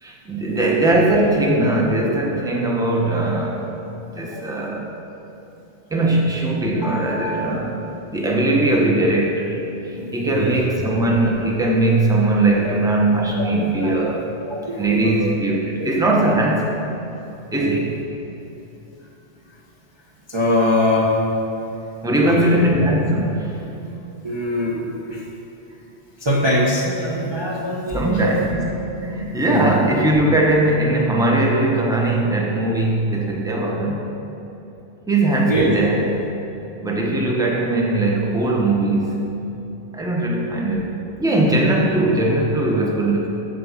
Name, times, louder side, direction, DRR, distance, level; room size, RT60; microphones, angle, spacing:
voice 1, 0.0-3.6 4.2-4.9 5.9-7.8 8.1-14.3 14.8-16.8 17.5-18.0 22.0-23.6 27.9-28.7 29.0-34.0 35.1-36.1 36.8-39.3 39.9-43.3, right 2 dB, 5° right, -1 dB, 0.9 m, -20 dB
voice 2, 4.1-4.5 6.8-7.9 9.9-10.6 12.6-12.7 13.1-13.5 13.8-14.0 14.5-15.4 15.8-15.9 20.3-21.2 22.2-22.6 24.2-25.2 26.2-28.4 29.5-29.7 35.5-35.7, left 1 dB, 25° right, -5 dB, 0.7 m, -23 dB
7.6 x 5.3 x 7.2 m, 2.9 s
omnidirectional pair, 1.2 m